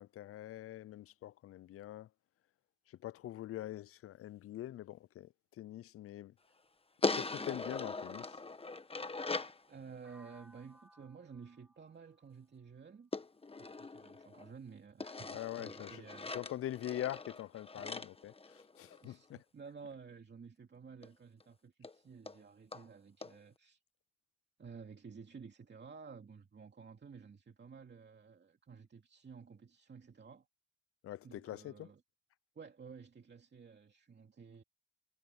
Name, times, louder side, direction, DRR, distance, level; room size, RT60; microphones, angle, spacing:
voice 1, 0.0-2.1 3.0-6.3 7.1-8.4 15.3-16.1 16.3-19.4 31.0-31.9, left 13 dB, 50° left, 0.4 m, -44 dB
sound 1, 7.0-9.6 13.1-14.5 15.0-19.1 21.0-21.1 21.4-21.5 21.8-21.9 22.3-22.4 22.7-22.8 23.2-23.3, left 3 dB, 20° left, 1.4 m, -40 dB
voice 2, 9.7-13.1 13.5-16.3 17.8-17.9 19.0-23.8 24.6-30.5 31.2-32.0 32.5-34.6, right 5 dB, 35° right, 2.6 m, -53 dB
sound 2, 10.0-13.9, equal, 5° right, 6.1 m, -65 dB
cardioid pair, 90°, 30 cm